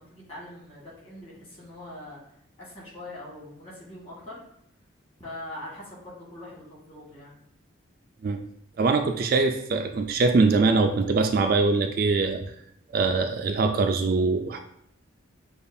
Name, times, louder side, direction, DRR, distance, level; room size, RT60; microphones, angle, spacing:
voice 1, 0.0-2.2 2.6-4.4 5.2-7.4, left 1 dB, 30° left, -6 dB, 1.6 m, -42 dB
voice 2, 8.8-12.4 12.9-14.6, right 3 dB, 50° right, 5 dB, 0.3 m, -23 dB
6.7 x 2.3 x 2.7 m, 0.73 s
head